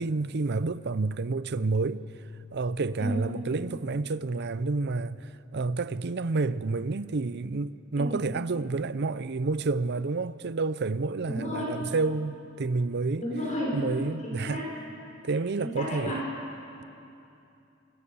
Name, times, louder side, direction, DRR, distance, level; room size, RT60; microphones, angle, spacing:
voice 1, 0.0-2.0 2.5-13.3 13.7-14.6 15.2-16.2, right 3 dB, 55° right, 0.6 m, -29 dB
voice 2, 11.3-11.7 13.2-13.8 14.2-14.7 15.6-16.2, equal, 40° left, 5.9 m, -32 dB
29.0 x 20.5 x 7.0 m
head